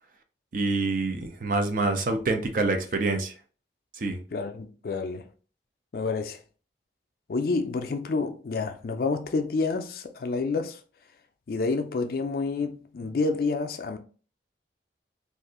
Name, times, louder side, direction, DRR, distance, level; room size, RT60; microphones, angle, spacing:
voice 1, 0.5-3.3 4.0-4.2, right 3 dB, 50° right, 0.4 m, -26 dB
voice 2, 4.3-5.3 5.9-6.4 7.3-10.8 11.5-14.0, left 3 dB, 50° left, 0.4 m, -29 dB
2.6 x 2.4 x 3.6 m
head